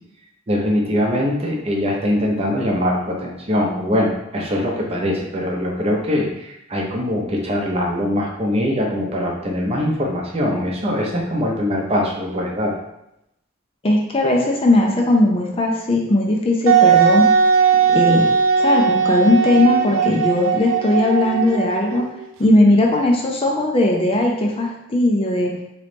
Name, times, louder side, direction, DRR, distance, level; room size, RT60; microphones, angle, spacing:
voice 1, 0.5-12.7, left 1 dB, 30° right, -1 dB, 0.7 m, -22 dB
voice 2, 13.8-17.3 17.9-18.3 18.6-22.0 22.4-25.5, left 1 dB, 25° left, 0 dB, 0.4 m, -18 dB
Wind instrument woodwind instrument, 16.7-22.2, right 6 dB, 70° right, 0.4 m, -17 dB
3.8 x 3.1 x 3.3 m, 0.83 s
head